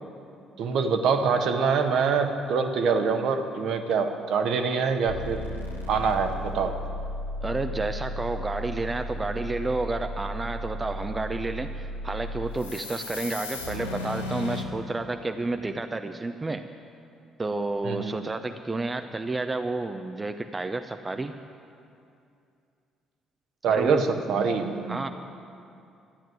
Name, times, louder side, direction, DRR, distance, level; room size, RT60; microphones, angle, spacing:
voice 1, 0.6-5.4 5.9-6.7 17.8-18.2 23.6-25.0, right 5 dB, 55° right, 6 dB, 1.2 m, -25 dB
sound 1, 5.0-14.6, left 1 dB, 80° left, 1.1 m, -35 dB
voice 2, 7.4-16.6 17.4-21.3 23.7-24.4 24.9-25.1, right 2 dB, 20° right, 7 dB, 0.7 m, -30 dB
13.5 x 10.5 x 9.4 m, 2.5 s
figure-of-eight pair, 45°, 0 cm